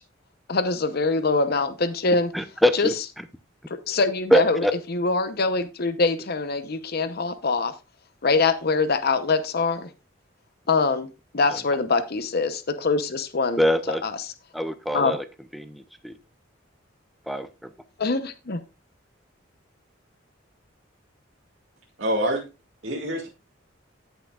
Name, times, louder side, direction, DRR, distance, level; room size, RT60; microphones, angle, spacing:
voice 1, 0.5-2.3 2.7-2.9 3.9-7.7 8.2-9.9 10.7-11.1 11.3-13.6 13.9-14.2 14.9-15.2 18.0-18.6, left 3 dB, 50° left, 10 dB, 0.8 m, -24 dB
voice 2, 2.3-2.9 4.3-4.7 11.5-11.6 13.6-14.0 14.5-15.2 15.5-16.2 17.3-17.7, equal, ahead, 10 dB, 0.5 m, -23 dB
voice 3, 22.0-22.4 22.8-23.3, right 1 dB, 80° right, 0 dB, 2.1 m, -25 dB
15.5 x 5.8 x 2.4 m, 0.28 s
head